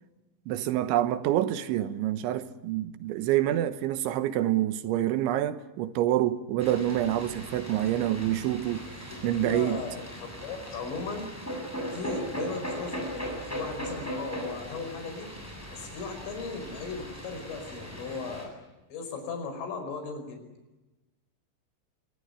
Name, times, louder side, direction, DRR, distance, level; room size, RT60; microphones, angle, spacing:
voice 1, 0.5-9.8, right 13 dB, 80° right, 3.3 m, -27 dB
sound 1, 6.6-18.4, equal, 5° left, 7.4 m, -39 dB
voice 2, 9.1-9.9 10.2-11.3 11.7-15.3 15.7-18.5 18.9-20.4, left 4 dB, 85° left, 7.5 m, -37 dB
25.0 x 22.0 x 9.7 m
omnidirectional pair, 5.5 m